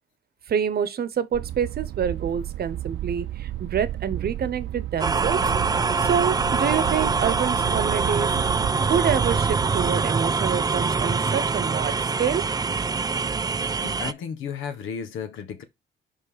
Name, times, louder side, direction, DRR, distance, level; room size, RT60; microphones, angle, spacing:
voice 1, 0.5-5.4 6.0-8.3 8.9-12.4, right 8 dB, 50° right, 0.9 m, -27 dB
sound 1, 1.3-9.9, right 13 dB, 70° right, 0.6 m, -32 dB
sound 2, 5.0-14.1, right 4 dB, 20° right, 0.4 m, -24 dB
voice 2, 13.8-15.6, left 7 dB, 80° left, 1.4 m, -33 dB
5.5 x 4.6 x 5.0 m
cardioid pair, 90°, 20 cm